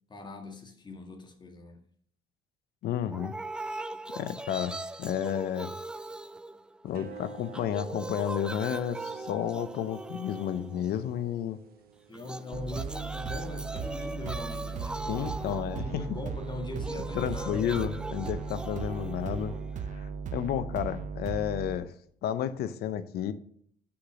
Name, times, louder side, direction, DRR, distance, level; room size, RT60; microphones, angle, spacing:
voice 1, 0.1-1.8 12.1-18.0, left 2 dB, 25° left, 1.7 m, -41 dB
voice 2, 2.8-3.3 4.1-5.7 6.8-11.6 15.1-16.0 17.1-19.5 19.9-21.9 22.2-23.3, left 10 dB, 70° left, 0.8 m, -32 dB
sound 1, 3.1-7.1 7.4-11.2 12.1-20.1, right 2 dB, 5° right, 0.3 m, -41 dB
sound 2, 6.9-13.8, right 6 dB, 65° right, 1.3 m, -47 dB
sound 3, 12.5-21.8, right 6 dB, 45° right, 0.7 m, -37 dB
6.0 x 5.9 x 6.3 m
cardioid pair, 110°, 17 cm